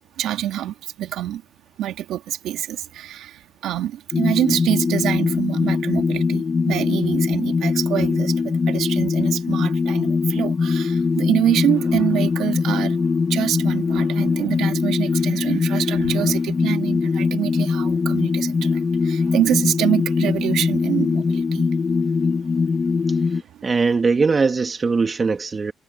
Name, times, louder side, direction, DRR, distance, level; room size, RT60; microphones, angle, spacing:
voice 1, 0.2-1.4 1.8-21.7 23.5-23.6, right 12 dB, 85° right, 2.5 m, -25 dB
sound 1, 4.1-23.4, left 4 dB, 35° left, 1.7 m, -21 dB
voice 2, 23.3-25.7, right 4 dB, 35° right, 2.1 m, -21 dB
cardioid pair, 90°, 0 cm